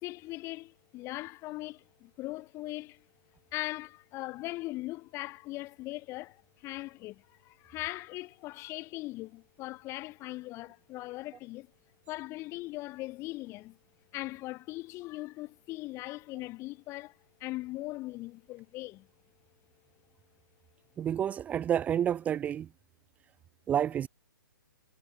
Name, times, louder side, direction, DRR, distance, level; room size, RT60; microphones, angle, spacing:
voice 1, 0.0-3.0 3.5-11.7 12.1-13.8 14.1-19.1, left 19 dB, 25° left, 3.4 m, -40 dB
voice 2, 21.0-22.7 23.7-24.1, right 9 dB, 15° right, 0.8 m, -29 dB
figure-of-eight pair, 130°, 11 cm